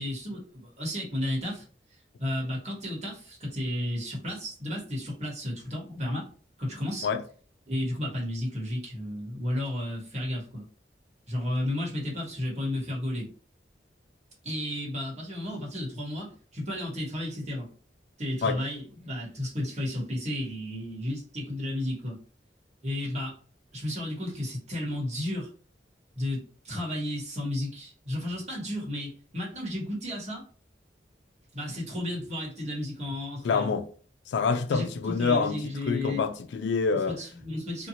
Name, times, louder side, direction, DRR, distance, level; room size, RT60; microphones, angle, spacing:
voice 1, 0.0-1.6 1.9-6.3 6.6-7.1 7.7-10.7 11.3-13.3 14.4-17.7 18.2-22.2 22.8-23.4 23.7-25.5 26.1-30.4 31.5-33.7 34.7-36.3 37.1-37.9, left 1 dB, 40° right, 1.3 m, -33 dB
voice 2, 33.4-33.9 34.3-37.2, left 5 dB, 80° left, 0.3 m, -27 dB
2.7 x 2.4 x 2.8 m
head